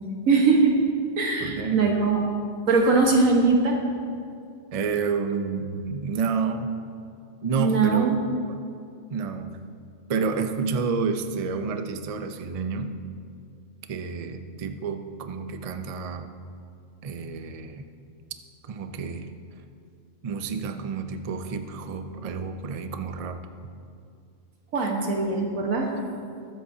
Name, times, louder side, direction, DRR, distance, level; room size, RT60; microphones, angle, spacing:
voice 1, 0.3-0.7 1.2-2.2 2.7-3.8 7.6-8.2 24.7-25.9, right 4 dB, 90° right, 1 dB, 1.6 m, -21 dB
voice 2, 1.4-1.8 4.7-6.7 7.4-8.2 8.5-8.6 9.1-9.6 10.1-13.0 13.9-16.3 17.0-17.9 18.7-19.3 20.2-23.4, right 5 dB, 45° right, 7 dB, 0.5 m, -29 dB
22.0 x 8.0 x 2.7 m, 2.4 s
omnidirectional pair, 1.4 m